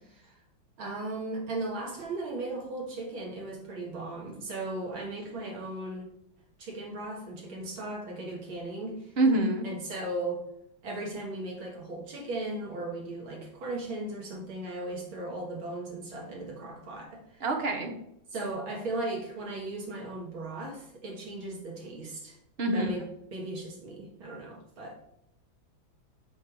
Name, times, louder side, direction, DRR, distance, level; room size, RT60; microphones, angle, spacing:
voice 1, 0.8-6.1 6.6-9.2 9.6-10.4 10.8-17.4 18.3-22.4 22.7-25.0, right 2 dB, 85° right, -1 dB, 2.4 m, -37 dB
voice 2, 9.2-9.7 17.4-17.9 22.6-22.9, right 2 dB, 45° right, 3 dB, 0.8 m, -25 dB
7.0 x 3.3 x 6.0 m, 0.77 s
omnidirectional pair, 2.2 m